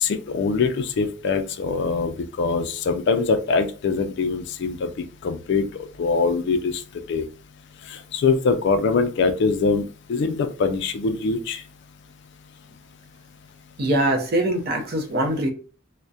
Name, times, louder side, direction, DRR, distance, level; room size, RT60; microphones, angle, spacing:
voice 1, 0.0-4.8 5.2-5.7 6.0-6.7 7.1-7.3 8.1-9.8 10.1-11.6, left 4 dB, 60° left, 0.3 m, -23 dB
voice 2, 13.8-15.5, right 1 dB, 50° right, 0.5 m, -22 dB
2.3 x 2.1 x 2.6 m
head